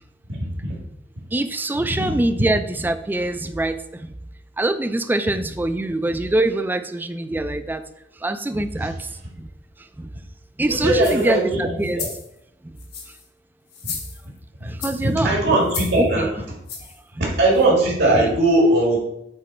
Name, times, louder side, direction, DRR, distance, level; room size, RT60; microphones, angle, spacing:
voice 1, 1.3-4.1 4.6-7.8 8.2-9.1 9.4-9.5 10.0-10.1 10.6-12.1 12.6-12.7 13.9-14.0 14.6-15.4 16.0-16.3 18.1-18.4, right 2 dB, 10° right, 11 dB, 0.3 m, -24 dB
voice 2, 10.7-12.1 14.6-14.7 15.0-16.3 17.4-19.0, right 1 dB, 85° right, -3 dB, 2.0 m, -19 dB
sound 1, 10.9-11.3 11.8-12.3 12.8-13.2 13.7-14.4 14.8-15.1 15.7-16.0 16.7-17.0 17.6-17.7, left 6 dB, 60° left, 1.3 m, -33 dB
8.0 x 3.2 x 4.2 m, 0.80 s
head